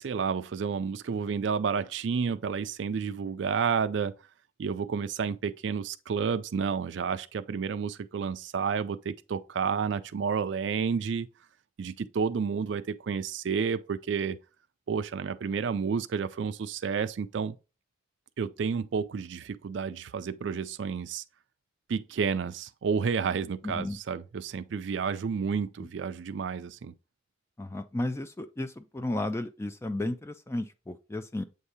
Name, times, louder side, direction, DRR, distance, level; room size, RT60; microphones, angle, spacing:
voice 1, 0.0-4.1 4.6-11.3 11.8-14.4 14.9-17.6 18.4-21.2 21.9-26.9, right 6 dB, 70° right, 0.4 m, -30 dB
voice 2, 23.6-24.0 27.6-31.4, left 1 dB, 15° left, 0.3 m, -33 dB
7.9 x 2.8 x 4.8 m
head